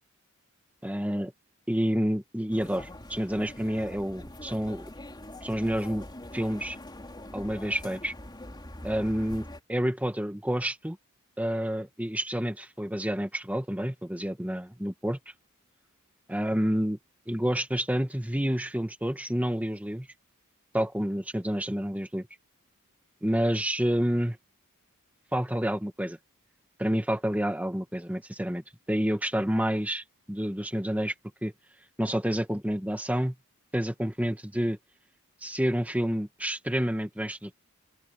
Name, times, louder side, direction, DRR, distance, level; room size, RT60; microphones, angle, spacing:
voice 1, 0.8-1.3 1.7-4.9 5.4-6.0 6.3-6.8 7.3-8.1 8.8-11.0 11.4-15.2 16.3-17.0 17.3-20.1 20.7-22.3 23.2-24.4 25.3-26.2 26.8-31.1 31.4-31.5 32.0-33.4 33.7-34.8 35.4-37.5, equal, 5° right, 1.9 m, -29 dB
sound 1, 2.5-9.6, left 1 dB, 20° left, 3.9 m, -43 dB
open air
head